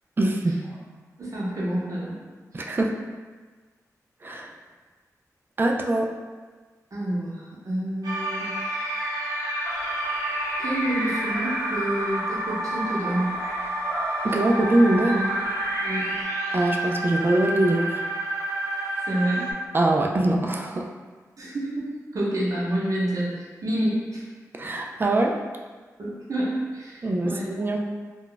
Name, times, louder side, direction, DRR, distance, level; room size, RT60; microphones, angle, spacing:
voice 1, 0.2-0.6 2.5-2.9 4.2-4.5 5.6-6.1 14.2-15.3 16.5-18.1 19.7-20.9 24.5-25.3 27.0-27.8, right 1 dB, 35° right, 1 dB, 0.3 m, -23 dB
voice 2, 1.2-2.2 2.5-2.7 6.9-8.5 10.6-13.4 14.3-14.4 15.8-16.0 19.1-19.5 21.4-24.3 26.0-27.7, right 1 dB, 60° right, -7 dB, 0.9 m, -28 dB
sound 1, 8.0-19.5, right 1 dB, 90° right, 0.8 m, -29 dB
sound 2, 9.6-16.2, equal, 40° left, 1.0 m, -40 dB
2.4 x 2.2 x 3.8 m, 1.4 s
wide cardioid pair, 90°, 6 cm